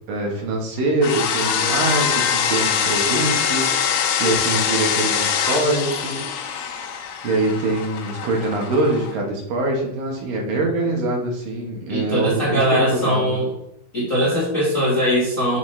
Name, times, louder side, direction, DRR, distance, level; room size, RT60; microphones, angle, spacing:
voice 1, 0.1-6.6 7.2-13.4, right 2 dB, 65° right, -1 dB, 2.9 m, -24 dB
sound 1, 1.0-9.1, left 7 dB, 80° left, 2.8 m, -23 dB
voice 2, 11.9-13.5 13.9-15.6, equal, 35° left, -6 dB, 1.3 m, -20 dB
7.1 x 5.7 x 3.3 m, 0.80 s
omnidirectional pair, 4.5 m